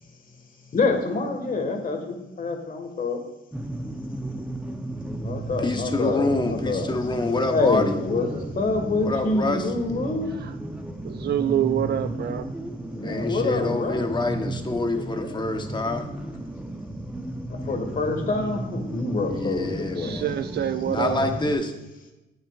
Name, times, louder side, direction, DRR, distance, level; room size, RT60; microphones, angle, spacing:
voice 1, 0.7-3.2 5.2-7.0 7.5-10.3 12.9-14.0 15.2-15.5 17.5-20.2, left 3 dB, 45° left, 4 dB, 1.6 m, -26 dB
sound 1, 3.5-21.5, right 1 dB, 5° right, 0.7 m, -34 dB
voice 2, 5.6-8.0 9.0-9.7 13.0-16.1 19.3-20.3 20.8-21.7, left 2 dB, 20° left, 5 dB, 1.0 m, -27 dB
voice 3, 11.0-12.5 20.0-21.3, right 10 dB, 55° right, 10 dB, 0.4 m, -26 dB
10.5 x 8.9 x 2.4 m, 1.0 s
cardioid pair, 90°, 20 cm